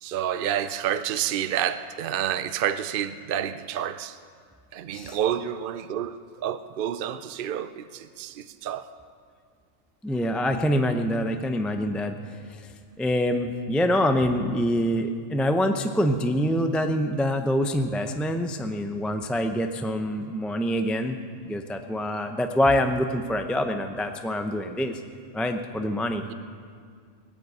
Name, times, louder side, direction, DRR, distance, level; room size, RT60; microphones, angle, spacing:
voice 1, 0.0-4.2 4.7-8.9 26.3-26.4, right 10 dB, 60° right, 12 dB, 0.6 m, -29 dB
voice 2, 10.0-12.1 12.5-12.6 13.0-21.2 21.5-25.0 25.3-26.2, equal, ahead, 5 dB, 0.4 m, -25 dB
18.0 x 9.9 x 7.9 m, 2.1 s
omnidirectional pair, 1.3 m